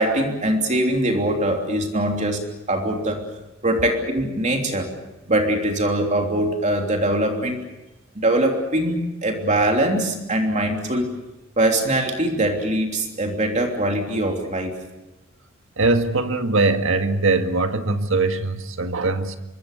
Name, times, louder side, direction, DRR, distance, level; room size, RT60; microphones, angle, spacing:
voice 1, 0.0-2.4 2.7-3.2 3.6-4.9 5.3-7.6 8.1-11.2 11.6-14.7, right 1 dB, 35° right, 2 dB, 3.2 m, -22 dB
voice 2, 15.8-19.4, right 3 dB, 70° right, 6 dB, 1.8 m, -21 dB
25.5 x 23.5 x 6.8 m, 0.95 s
head